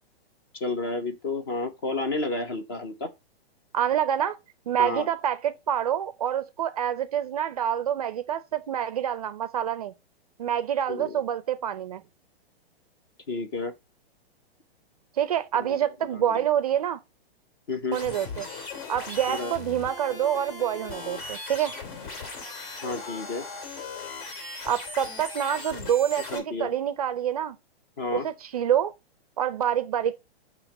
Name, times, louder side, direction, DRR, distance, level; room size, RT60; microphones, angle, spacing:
voice 1, 0.6-3.1 4.8-5.1 10.9-11.2 13.3-13.7 15.6-15.8 16.1-16.4 17.7-18.0 19.3-19.5 22.8-23.4 26.3-26.7 28.0-28.3, left 3 dB, 25° left, 0.4 m, -31 dB
voice 2, 3.7-4.4 4.7-9.9 10.4-12.0 15.2-17.0 17.9-18.5 18.9-21.7 24.7-27.6 28.1-28.9 29.4-30.2, right 10 dB, 40° right, 0.4 m, -27 dB
sound 1, 17.9-26.4, left 3 dB, 55° left, 3.0 m, -38 dB
6.9 x 2.9 x 5.8 m
hypercardioid pair, 165°, 31 cm